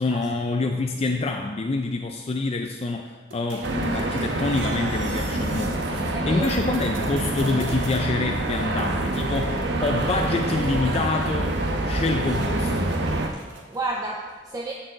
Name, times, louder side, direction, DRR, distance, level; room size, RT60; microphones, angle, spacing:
voice 1, 0.0-11.6 11.8-12.9, left 3 dB, 35° left, 4 dB, 0.4 m, -27 dB
sound 1, 3.3-6.2 6.4-8.0 8.7-11.7 12.3-13.9, right 3 dB, 85° right, 1.4 m, -45 dB
sound 2, 3.6-13.3, right 2 dB, 65° right, 0.9 m, -26 dB
voice 2, 6.1-6.6 13.3-14.7, right 2 dB, 20° right, -1 dB, 0.6 m, -32 dB
13.5 x 4.7 x 4.0 m, 1.3 s
head